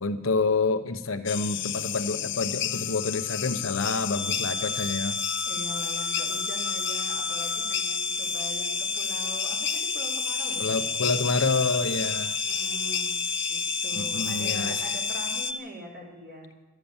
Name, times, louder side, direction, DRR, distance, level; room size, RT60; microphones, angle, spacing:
voice 1, 0.0-5.2 10.6-12.4 14.0-14.8, left 3 dB, 80° left, 9 dB, 0.9 m, -28 dB
sound 1, 1.3-15.5, left 12 dB, 60° left, 0.6 m, -32 dB
sound 2, 4.1-15.6, equal, 5° right, 1.1 m, -32 dB
voice 2, 5.4-11.2 12.4-16.5, right 1 dB, 50° right, -4 dB, 3.2 m, -42 dB
13.0 x 9.3 x 7.1 m, 1.1 s
head